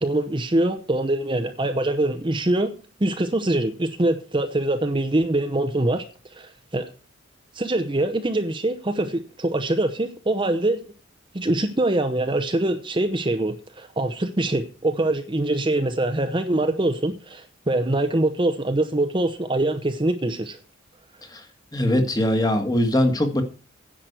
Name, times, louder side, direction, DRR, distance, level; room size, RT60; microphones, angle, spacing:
voice 1, 0.0-2.7 3.0-6.1 6.3-6.9 7.5-10.8 11.3-20.6, right 1 dB, 25° right, 8 dB, 0.8 m, -24 dB
voice 2, 21.7-23.4, left 1 dB, 20° left, 6 dB, 1.6 m, -21 dB
10.0 x 6.1 x 8.0 m, 0.35 s
head